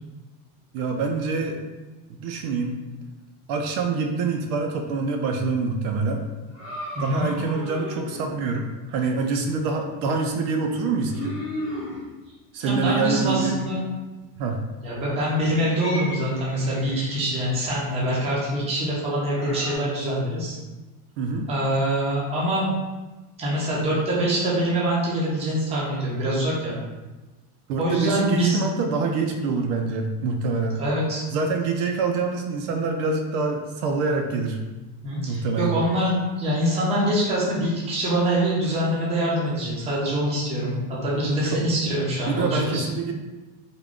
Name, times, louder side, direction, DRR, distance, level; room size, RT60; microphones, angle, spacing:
voice 1, 0.7-1.6 2.2-2.8 3.5-6.2 7.0-11.4 12.5-13.5 14.4-14.6 21.2-21.5 27.7-30.8 31.3-34.6 35.3-35.7 41.5-41.6 42.4-43.1, right 4 dB, 65° right, 3 dB, 0.5 m, -26 dB
sound 1, 6.5-8.4 10.8-12.0 12.8-13.8 15.7-17.3 19.3-19.8, left 1 dB, 10° left, 0.9 m, -36 dB
voice 2, 6.9-7.3 12.6-13.8 14.8-20.6 21.5-22.7 23.4-26.8 27.8-28.6 30.8-31.2 35.0-42.8, right 1 dB, 15° right, -6 dB, 0.6 m, -24 dB
3.7 x 2.2 x 3.5 m, 1.2 s
cardioid pair, 165°, 50 cm